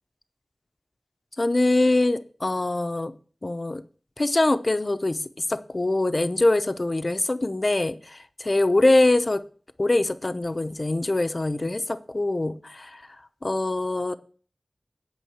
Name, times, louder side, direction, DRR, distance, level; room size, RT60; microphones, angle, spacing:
voice 1, 1.4-3.1 3.4-3.8 4.2-5.2 5.5-9.4 9.8-13.1 13.4-14.1, left 2 dB, 45° left, 11 dB, 0.7 m, -23 dB
8.4 x 5.6 x 7.3 m, 0.42 s
wide cardioid pair, 50°, 0 cm